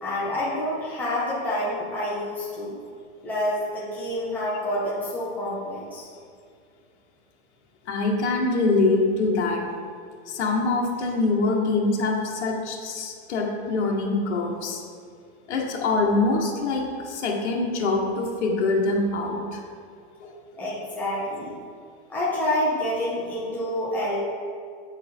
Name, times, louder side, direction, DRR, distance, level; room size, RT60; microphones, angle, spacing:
voice 1, 0.0-2.8 3.2-6.1 20.6-21.5 22.1-24.2, left 1 dB, 5° left, -9 dB, 1.5 m, -28 dB
voice 2, 7.9-9.6 10.3-14.8 15.5-19.6 20.2-20.4, left 3 dB, 85° left, -1 dB, 1.6 m, -24 dB
8.8 x 4.8 x 4.4 m, 2.3 s
supercardioid pair, 160°, 34 cm